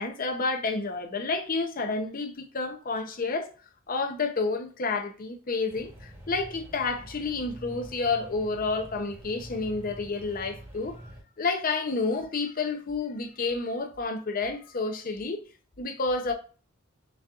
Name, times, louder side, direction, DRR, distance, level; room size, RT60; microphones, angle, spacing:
voice 1, 0.0-3.5 3.9-15.4 15.8-16.3, left 3 dB, 45° left, 0.7 m, -30 dB
sound 1, 5.7-11.2, right 1 dB, 15° right, 1.2 m, -46 dB
6.1 x 2.9 x 2.4 m
head